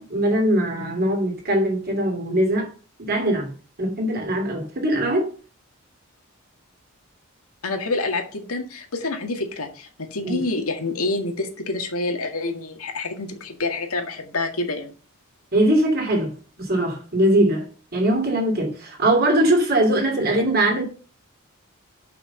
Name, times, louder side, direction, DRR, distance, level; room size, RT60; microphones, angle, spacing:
voice 1, 0.0-2.7 3.0-3.5 3.8-5.3 10.2-10.4 15.5-16.3 16.6-17.7 17.9-20.8, right 1 dB, 45° right, 2.8 m, -21 dB
voice 2, 7.6-14.9, left 2 dB, 85° left, 1.9 m, -27 dB
6.1 x 5.8 x 7.0 m
head